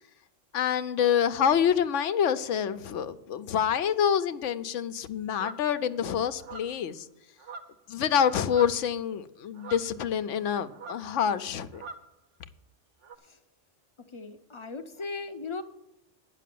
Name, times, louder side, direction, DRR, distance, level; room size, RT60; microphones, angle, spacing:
voice 1, 0.5-7.1 7.9-11.8, left 8 dB, 85° left, 12 dB, 1.0 m, -27 dB
sound 1, 5.3-5.7 6.4-6.9 7.4-7.9 8.2-8.9 9.6-10.4 10.7-11.1 11.7-12.1 13.0-13.2, right 3 dB, 80° right, 1.1 m, -44 dB
voice 2, 14.1-15.6, left 4 dB, 35° left, 9 dB, 0.5 m, -37 dB
10.0 x 6.1 x 7.6 m, 0.83 s
omnidirectional pair, 1.2 m